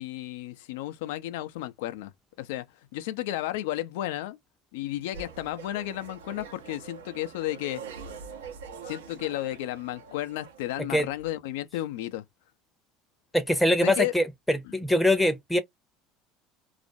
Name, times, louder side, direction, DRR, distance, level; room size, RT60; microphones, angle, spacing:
voice 1, 0.0-2.1 2.4-2.7 2.9-4.4 4.7-7.8 8.8-12.2 13.8-14.1, left 14 dB, 75° left, 0.4 m, -33 dB
sound 1, 5.1-11.3, right 6 dB, 90° right, 0.7 m, -44 dB
voice 2, 13.3-15.6, left 1 dB, 5° left, 0.6 m, -23 dB
2.4 x 2.0 x 2.6 m
hypercardioid pair, 75°, 0 cm